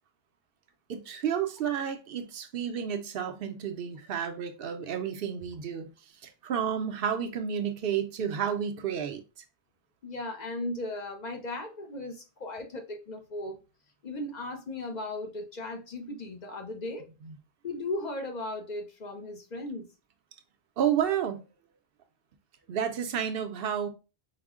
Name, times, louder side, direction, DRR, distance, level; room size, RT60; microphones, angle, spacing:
voice 1, 0.9-5.9 6.2-9.4 17.2-17.3 20.8-21.4 22.7-23.9, right 8 dB, 70° right, 0.7 m, -31 dB
voice 2, 10.0-13.6 14.0-17.1 17.6-19.9, left 2 dB, 50° left, 0.7 m, -36 dB
4.9 x 2.0 x 3.5 m
omnidirectional pair, 1.0 m